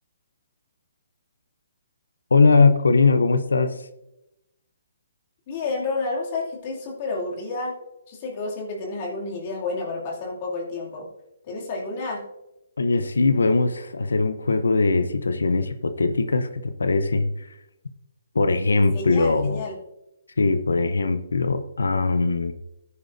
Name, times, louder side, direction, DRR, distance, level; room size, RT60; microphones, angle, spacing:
voice 1, 2.3-3.9 12.8-17.5 18.3-19.6 20.4-22.5, left 3 dB, 90° left, 10 dB, 0.7 m, -21 dB
voice 2, 5.5-7.7 8.1-11.1 11.4-12.2 18.9-19.8, left 3 dB, 40° left, -2 dB, 2.5 m, -30 dB
13.5 x 9.6 x 2.6 m, 0.90 s
hypercardioid pair, 150°, 0 cm